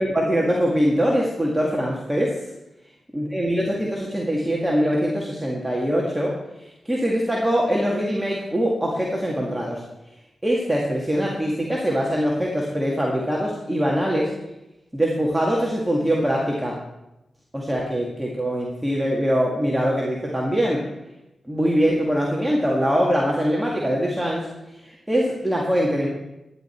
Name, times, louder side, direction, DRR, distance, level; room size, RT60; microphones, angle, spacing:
voice 1, 0.0-2.4 3.1-6.4 6.9-9.8 10.4-14.3 14.9-16.8 17.5-20.9 21.5-24.5 24.8-26.1, equal, 10° right, -3 dB, 2.1 m, -23 dB
12.0 x 10.5 x 4.6 m, 0.93 s
cardioid pair, 75°, 0 cm